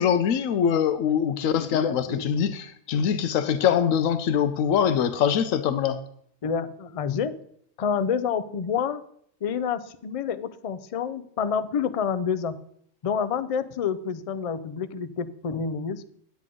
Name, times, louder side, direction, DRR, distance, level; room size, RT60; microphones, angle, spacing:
voice 1, 0.0-6.0, left 8 dB, 90° left, 10 dB, 1.0 m, -23 dB
voice 2, 1.6-2.2 6.4-7.4 7.8-9.0 9.4-12.6 13.0-16.0, left 6 dB, 55° left, 13 dB, 0.4 m, -28 dB
9.8 x 9.2 x 3.7 m, 0.65 s
omnidirectional pair, 1.3 m